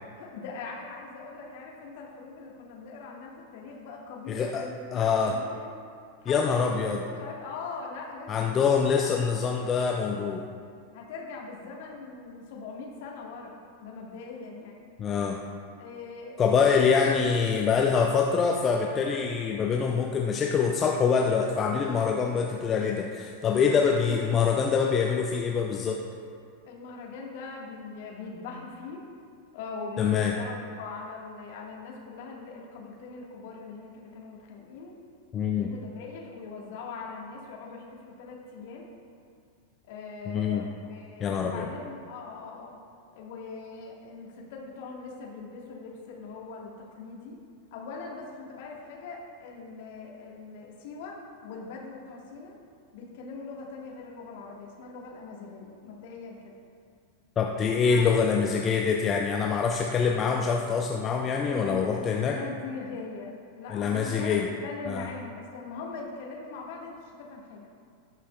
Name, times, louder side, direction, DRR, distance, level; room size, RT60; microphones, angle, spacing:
voice 1, 0.2-5.7 6.2-9.0 10.9-14.8 15.8-17.2 23.6-24.0 26.7-29.0 29.5-35.0 35.3-38.9 39.9-42.8 43.1-47.4 47.7-52.6 52.9-56.6 57.9-58.1 61.4-67.7, left 4 dB, 50° left, -1 dB, 1.5 m, -41 dB
voice 2, 4.3-4.6 4.9-5.4 6.3-7.0 8.3-10.4 15.0-15.4 16.4-26.0 30.0-30.3 35.3-35.7 40.3-40.6 41.2-41.7 57.4-62.4 63.7-64.5 64.9-65.1, left 6 dB, 25° left, 1 dB, 0.5 m, -25 dB
17.5 x 5.8 x 2.3 m, 2.3 s
figure-of-eight pair, 90°, 0 cm